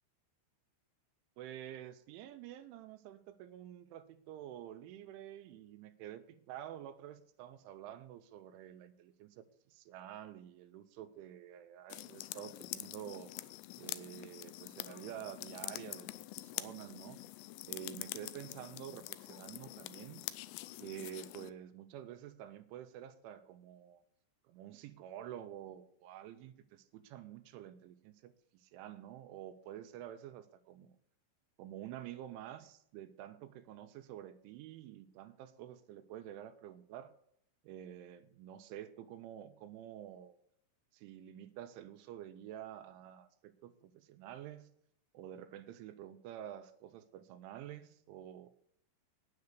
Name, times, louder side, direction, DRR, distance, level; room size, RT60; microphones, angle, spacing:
voice 1, 1.4-13.3 13.8-16.1 16.4-17.2 17.7-20.2 20.8-24.0 24.4-30.9 31.6-37.1 37.6-40.4 40.9-44.7 45.1-48.5, right 11 dB, 80° right, 11 dB, 2.9 m, -49 dB
sound 1, 11.9-21.5, left 17 dB, 90° left, 2.5 m, -46 dB
9.5 x 9.5 x 6.6 m, 0.70 s
omnidirectional pair, 5.7 m